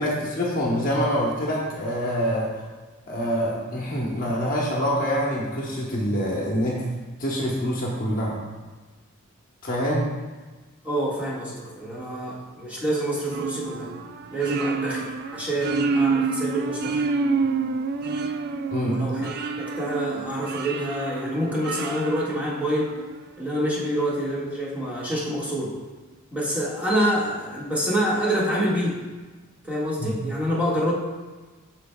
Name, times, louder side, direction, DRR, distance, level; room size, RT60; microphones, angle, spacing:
voice 1, 0.0-2.6 3.1-6.8 7.2-8.4 9.6-10.0 18.7-19.0 30.0-30.1, equal, 40° left, -3 dB, 1.1 m, -25 dB
voice 2, 10.8-13.9 14.3-17.0 18.9-22.9 23.4-25.7 26.3-29.0 29.6-30.9, equal, 5° right, -8 dB, 1.7 m, -27 dB
sound 1, 13.3-23.1, right 4 dB, 50° right, 0.3 m, -28 dB
13.0 x 4.6 x 2.3 m, 1.3 s
head